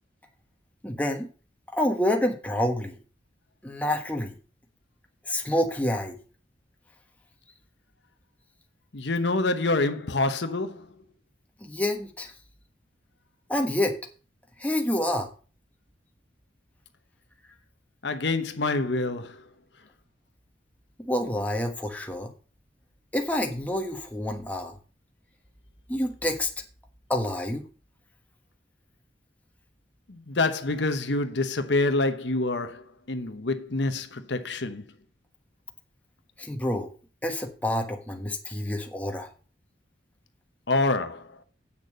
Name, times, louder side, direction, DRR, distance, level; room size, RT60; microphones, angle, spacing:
voice 1, 0.8-1.3 1.7-3.0 3.6-4.3 5.3-6.2 11.6-12.3 13.5-14.1 14.6-15.3 21.0-22.3 23.1-24.8 25.9-26.5 27.1-27.6 36.4-36.9 37.2-39.3, left 1 dB, 10° left, 1.3 m, -28 dB
voice 2, 8.9-10.9 18.0-19.4 30.1-34.8 40.7-41.4, left 2 dB, 70° left, 1.0 m, -27 dB
8.6 x 6.6 x 6.5 m
head